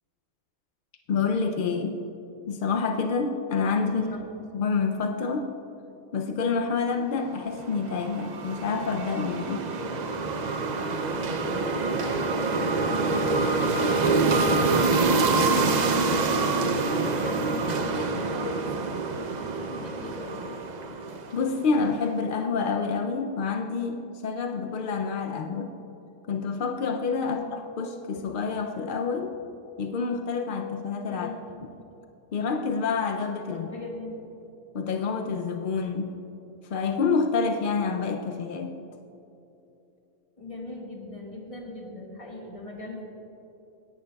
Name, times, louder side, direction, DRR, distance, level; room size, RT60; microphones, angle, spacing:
voice 1, 1.1-2.0 2.5-4.2 4.5-5.5 6.1-9.7 21.3-25.7 26.3-29.3 29.8-31.3 32.3-33.7 34.7-36.1 36.7-38.8, left 5 dB, 70° left, 4 dB, 0.4 m, -28 dB
voice 2, 3.9-4.2 11.6-16.4 17.1-18.9 19.4-20.5 27.2-27.5 31.1-31.4 33.5-34.2 40.4-43.0, left 1 dB, 25° left, -2 dB, 1.5 m, -38 dB
sound 1, 7.4-21.7, right 3 dB, 55° right, 0.5 m, -26 dB
17.0 x 10.5 x 2.3 m, 2.9 s
omnidirectional pair, 1.5 m